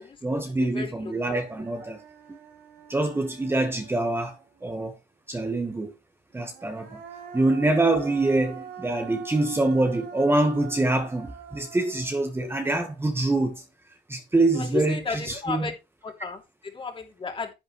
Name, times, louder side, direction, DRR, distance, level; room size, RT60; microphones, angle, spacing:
voice 1, 0.2-2.0 2.3-2.4 2.9-4.9 5.3-5.9 6.3-7.0 7.3-13.6 14.1-15.7, right 2 dB, 15° right, 1.4 m, -25 dB
Human voice, 0.6-0.7 1.0-4.7 6.3-13.6, right 7 dB, 75° right, 3.8 m, -45 dB
voice 2, 14.6-15.2 15.4-15.7 16.0-16.4 16.7-17.5, left 4 dB, 30° left, 2.9 m, -32 dB
10.5 x 8.7 x 3.1 m
cardioid pair, 110°, 17 cm